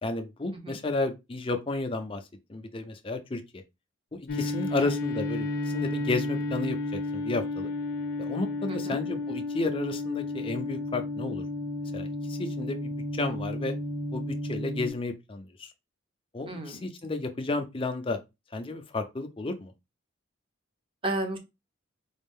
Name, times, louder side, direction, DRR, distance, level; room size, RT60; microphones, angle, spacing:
voice 1, 0.0-2.2 2.5-3.6 4.1-7.7 8.2-11.4 11.8-13.7 14.1-15.7 16.3-18.2 18.5-19.7, left 2 dB, 25° left, 0.5 m, -32 dB
sound 1, 4.3-14.9, left 2 dB, 50° left, 0.8 m, -32 dB
voice 2, 8.7-9.0 16.5-16.8 21.0-21.4, right 2 dB, 25° right, 0.8 m, -33 dB
4.2 x 2.4 x 3.5 m
head